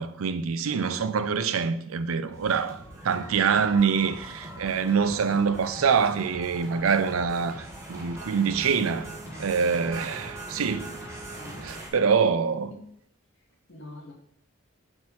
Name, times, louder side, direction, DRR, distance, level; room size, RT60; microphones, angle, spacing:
voice 1, 0.0-9.1 9.4-10.9 11.6-12.7, right 6 dB, 85° right, 0.5 m, -25 dB
sound 1, 2.3-11.9, right 1 dB, 15° right, 1.4 m, -41 dB
voice 2, 3.2-3.6 9.3-10.1 11.4-11.8 12.7-12.9 13.7-14.1, left 1 dB, 60° left, 1.2 m, -45 dB
5.9 x 4.3 x 4.3 m
head